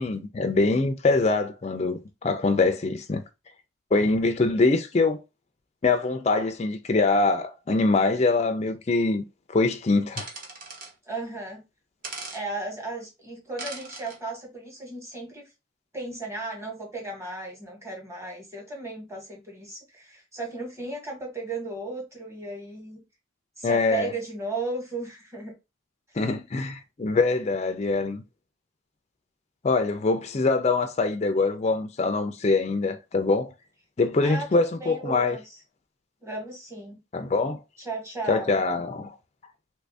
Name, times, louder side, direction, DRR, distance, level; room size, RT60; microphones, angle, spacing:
voice 1, 0.0-3.2 3.9-5.2 5.8-9.2 9.5-10.3 23.6-24.1 26.2-28.2 29.6-33.5 34.0-35.4 37.1-37.6 38.3-39.2, left 3 dB, 30° left, 0.4 m, -24 dB
sound 1, 10.2-10.9 12.0-12.4 13.6-14.2, right 3 dB, 45° right, 0.8 m, -38 dB
voice 2, 11.1-11.6 12.3-15.5 15.9-23.0 23.6-25.5 34.2-34.5 34.7-35.6 36.2-37.0 37.8-38.6, right 3 dB, 15° right, 1.2 m, -35 dB
3.0 x 2.6 x 3.3 m
head